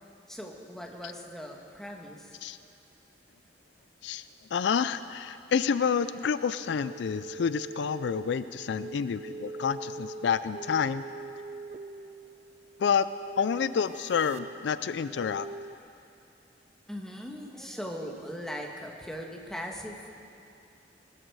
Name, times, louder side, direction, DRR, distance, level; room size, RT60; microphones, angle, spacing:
voice 1, 0.3-2.4 15.8-15.9 16.9-20.1, equal, 5° left, 0 dB, 1.3 m, -40 dB
voice 2, 4.0-11.0 12.8-13.1 13.4-15.5, left 6 dB, 70° left, 14 dB, 0.4 m, -29 dB
sound 1, 6.6-15.7, right 3 dB, 35° right, 0.4 m, -43 dB
20.0 x 13.0 x 4.7 m, 2.6 s
head